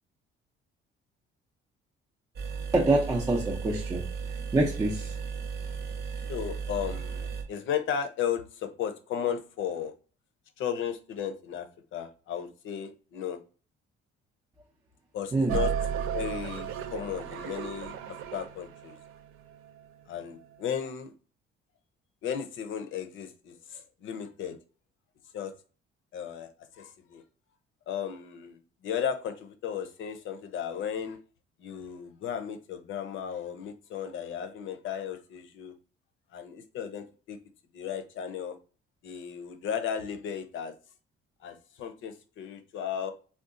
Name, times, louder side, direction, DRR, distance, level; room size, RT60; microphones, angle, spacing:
sound 1, 2.4-7.4, right 5 dB, 50° right, 0.8 m, -35 dB
voice 1, 2.7-4.0 4.5-5.1 15.3-15.6, right 2 dB, 20° right, 0.5 m, -25 dB
voice 2, 6.3-9.9 10.6-13.4 15.1-15.7 16.1-19.0 20.1-21.1 22.2-24.6 25.3-25.5 26.1-26.5 26.7-27.2 27.9-31.2 31.6-35.7 36.3-37.4 37.7-38.6 39.0-40.7 41.4-43.1, left 8 dB, 65° left, 0.6 m, -35 dB
sound 2, 15.5-19.8, right 8 dB, 75° right, 0.4 m, -34 dB
3.7 x 2.3 x 2.5 m
cardioid pair, 110°, 21 cm